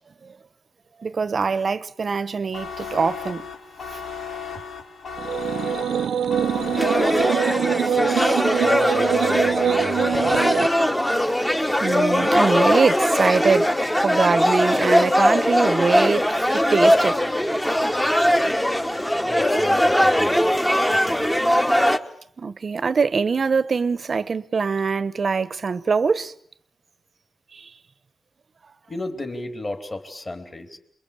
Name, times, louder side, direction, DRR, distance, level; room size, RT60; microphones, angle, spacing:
voice 1, 1.0-3.5 3.9-4.0 11.8-17.2 22.4-26.3 27.5-27.7, right 5 dB, 45° right, 1.1 m, -23 dB
sound 1, 2.5-7.8, left 6 dB, 85° left, 3.7 m, -35 dB
sound 2, 5.2-10.7, right 8 dB, 85° right, 1.1 m, -23 dB
sound 3, 6.8-22.0, equal, 10° left, 1.4 m, -20 dB
voice 2, 7.6-10.4 19.3-20.6 20.9-21.3 28.9-30.8, left 2 dB, 30° left, 3.9 m, -33 dB
28.5 x 22.5 x 8.6 m
wide cardioid pair, 120°, 0 cm